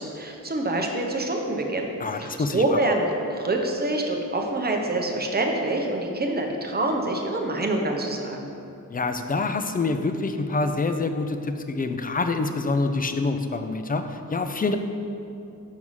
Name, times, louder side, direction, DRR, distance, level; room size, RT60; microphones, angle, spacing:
voice 1, 0.0-1.9 2.2-8.5, right 2 dB, 30° right, 1 dB, 0.8 m, -26 dB
voice 2, 2.0-2.8 8.9-14.8, left 3 dB, 30° left, 7 dB, 0.4 m, -26 dB
6.3 x 4.7 x 5.6 m, 2.7 s
wide cardioid pair, 110°, 32 cm